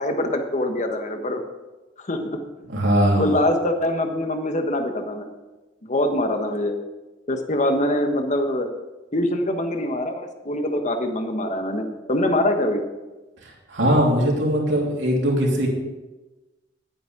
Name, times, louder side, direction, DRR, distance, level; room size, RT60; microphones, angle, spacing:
voice 1, 0.0-1.4 2.0-2.4 3.2-5.3 5.8-6.8 7.3-8.7 9.1-12.8, left 1 dB, 40° left, 6 dB, 1.3 m, -24 dB
voice 2, 2.7-3.3 13.4-15.7, equal, 70° right, -2 dB, 3.1 m, -20 dB
11.0 x 9.2 x 5.0 m, 1.1 s
head